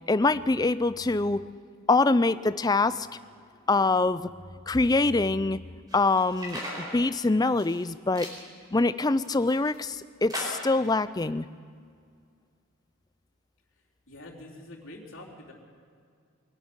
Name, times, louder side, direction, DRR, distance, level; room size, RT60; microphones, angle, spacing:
voice 1, 0.1-1.4 1.9-3.1 3.7-4.3 4.7-5.6 5.9-8.3 8.7-11.5, left 3 dB, 15° left, 14 dB, 0.4 m, -24 dB
sound 1, 5.9-7.0 7.5-7.9 8.2-8.4 9.0-9.8 10.3-10.8, equal, 20° right, 4.9 m, -38 dB
voice 2, 14.1-15.5, left 1 dB, 60° left, -2 dB, 3.7 m, -45 dB
23.0 x 12.0 x 9.7 m, 2.2 s
head